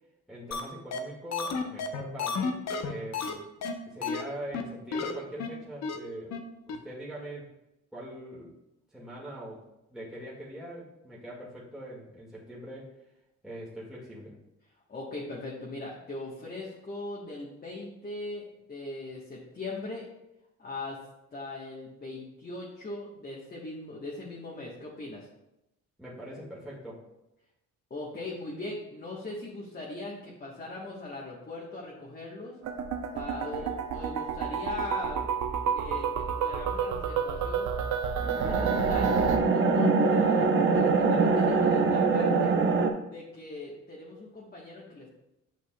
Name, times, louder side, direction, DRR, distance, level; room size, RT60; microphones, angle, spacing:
voice 1, 0.3-3.4 3.9-6.3 6.7-7.5 7.9-8.5 8.9-9.6 9.9-12.9 13.4-14.3 26.0-27.0 33.5-33.7, right 1 dB, ahead, -7 dB, 1.8 m, -42 dB
sound 1, 0.5-0.6 0.9-1.0 1.3-3.3 3.6-3.7 4.0-4.2 4.5-4.6 4.9-5.1 5.4-5.5 5.8-6.0 6.3-6.4 6.7-6.8, left 5 dB, 60° left, 0.8 m, -31 dB
voice 2, 14.6-20.1 20.6-21.0 21.3-25.3 27.9-32.6 33.1-35.3 35.7-37.7 38.4-42.6 43.0-45.1, left 2 dB, 30° left, -4 dB, 1.2 m, -40 dB
sound 2, 32.6-39.4, right 6 dB, 75° right, 0.7 m, -30 dB
sound 3, 38.2-42.9, right 4 dB, 40° right, 0.7 m, -23 dB
8.5 x 5.9 x 2.3 m, 0.90 s
cardioid pair, 90°, 30 cm